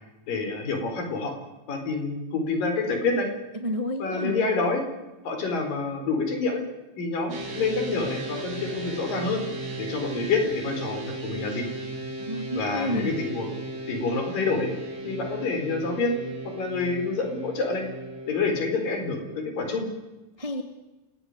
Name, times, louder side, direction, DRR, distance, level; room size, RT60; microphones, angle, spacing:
voice 1, 0.3-1.3 1.7-3.3 4.0-4.8 5.2-6.6 7.0-9.4 9.8-11.6 12.6-13.5 13.9-14.7 15.0-16.1 16.6-17.8 18.3-19.9, left 3 dB, 65° left, 5 dB, 6.2 m, -27 dB
voice 2, 3.6-4.4 12.2-13.1 20.4-20.6, equal, 15° right, 5 dB, 1.5 m, -30 dB
sound 1, 7.3-19.4, right 2 dB, 80° right, 7.8 m, -36 dB
28.5 x 17.5 x 9.8 m, 1.1 s
omnidirectional pair, 4.3 m